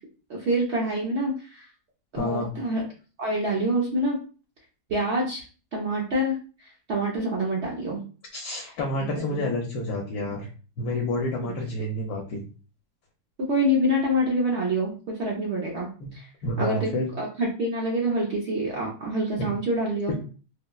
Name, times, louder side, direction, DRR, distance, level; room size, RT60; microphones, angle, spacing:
voice 1, 0.3-1.7 2.1-2.8 3.2-4.2 4.9-5.4 5.7-6.4 6.9-8.0 9.0-9.4 11.4-11.5 13.4-16.3 16.6-20.1, right 1 dB, 60° right, -2 dB, 0.7 m, -26 dB
voice 2, 2.2-2.5 8.3-10.5 10.8-12.4 16.0-16.1 16.4-17.1 19.4-19.5, left 1 dB, 75° left, -1 dB, 1.1 m, -29 dB
3.9 x 2.0 x 2.3 m, 0.37 s
omnidirectional pair, 1.8 m